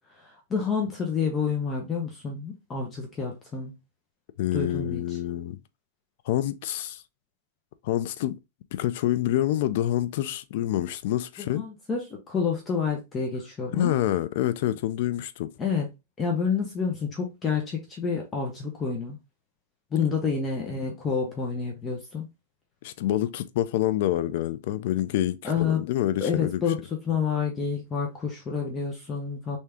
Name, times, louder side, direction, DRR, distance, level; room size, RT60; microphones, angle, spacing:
voice 1, 0.2-3.7 4.5-5.0 11.4-14.0 15.6-15.9 16.2-19.2 19.9-22.3 25.4-25.8 26.2-29.6, left 5 dB, 15° left, 0.7 m, -29 dB
voice 2, 4.4-5.6 6.3-7.0 7.8-8.3 8.7-11.6 13.7-15.5 22.8-26.6, left 13 dB, 55° left, 0.4 m, -27 dB
3.5 x 2.7 x 3.3 m
supercardioid pair, 160°, 0 cm